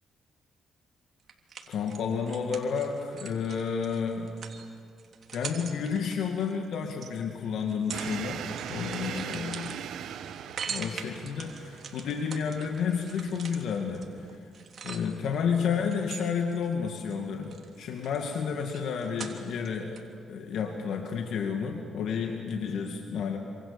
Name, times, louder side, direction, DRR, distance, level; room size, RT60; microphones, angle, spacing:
sound 1, 1.3-7.1 7.6-8.2 8.4-15.4 15.9-17.1 17.4-19.7 20.0-20.1, right 6 dB, 50° right, 3.2 m, -42 dB
voice 1, 1.7-4.4 5.3-9.8 10.7-14.4 14.8-20.0 20.3-23.4, left 6 dB, 75° left, 3 dB, 2.3 m, -31 dB
sound 2, 7.9-14.4, right 9 dB, 75° right, 1.3 m, -40 dB
27.5 x 27.0 x 7.1 m, 2.2 s
cardioid pair, 90°, 0 cm